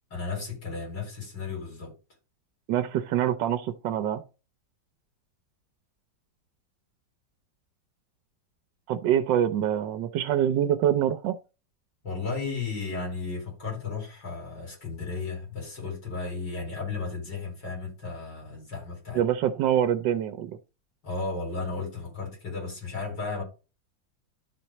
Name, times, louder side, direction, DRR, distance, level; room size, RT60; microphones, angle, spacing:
voice 1, 0.1-1.9 12.0-19.2 21.0-23.4, left 4 dB, 75° left, 5.0 m, -34 dB
voice 2, 2.7-4.2 8.9-11.4 19.1-20.6, right 10 dB, 85° right, 1.4 m, -25 dB
12.5 x 4.4 x 3.0 m
omnidirectional pair, 1.9 m